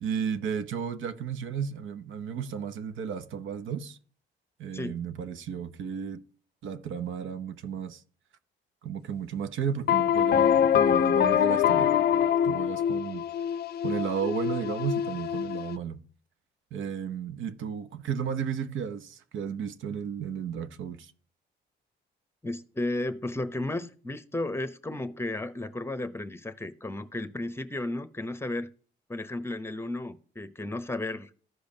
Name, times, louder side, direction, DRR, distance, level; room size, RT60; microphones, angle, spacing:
voice 1, 0.0-4.0 4.6-6.2 6.6-8.0 8.8-11.9 12.4-13.2 13.8-16.0 16.7-21.1, right 7 dB, 75° right, 0.8 m, -33 dB
sound 1, 9.9-15.8, left 9 dB, 55° left, 0.5 m, -24 dB
voice 2, 22.4-28.7 29.1-31.3, left 2 dB, 10° left, 0.9 m, -33 dB
14.0 x 5.1 x 2.8 m
cardioid pair, 90°, 20 cm